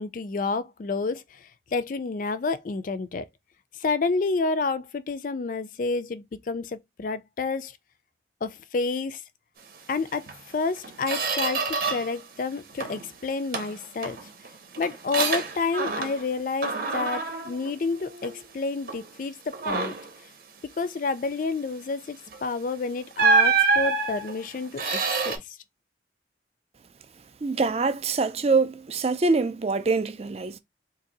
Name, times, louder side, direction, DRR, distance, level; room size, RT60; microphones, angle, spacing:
voice 1, 0.0-3.3 3.7-7.8 8.4-9.2 9.9-10.3 10.5-14.2 14.8-19.9 20.8-25.6, left 4 dB, 45° left, 0.4 m, -29 dB
Squeak, 10.3-10.4 10.8-12.2 12.5-13.1 13.5-16.3 16.6-18.5 18.9-19.1 19.5-20.2 22.3-22.5 23.2-25.4, right 4 dB, 55° right, 0.9 m, -27 dB
voice 2, 27.4-30.6, right 3 dB, 35° right, 0.4 m, -24 dB
2.7 x 2.7 x 3.9 m
head